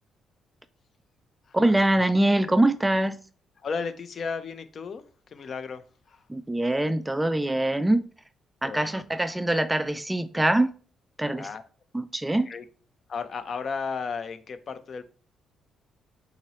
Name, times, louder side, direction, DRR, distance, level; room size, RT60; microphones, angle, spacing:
voice 1, 1.5-3.2 6.3-8.0 8.6-10.7 11.2-11.5 11.9-12.5, right 1 dB, 10° right, 0.3 m, -23 dB
voice 2, 3.6-5.0 5.3-6.2 8.6-9.0 11.4-11.6 12.4-12.6 13.1-15.0, left 5 dB, 50° left, 0.6 m, -34 dB
4.3 x 4.0 x 3.0 m
cardioid pair, 90°, 0 cm